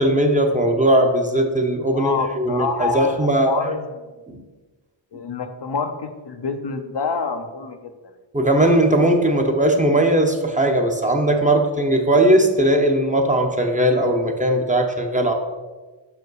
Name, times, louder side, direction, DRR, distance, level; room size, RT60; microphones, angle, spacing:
voice 1, 0.0-3.5 4.3-4.4 8.3-15.3, right 1 dB, 15° right, 3 dB, 0.8 m, -18 dB
voice 2, 1.9-3.9 5.1-7.8, left 4 dB, 60° left, 6 dB, 0.7 m, -27 dB
5.9 x 4.9 x 4.7 m, 1.3 s
wide cardioid pair, 65°, 48 cm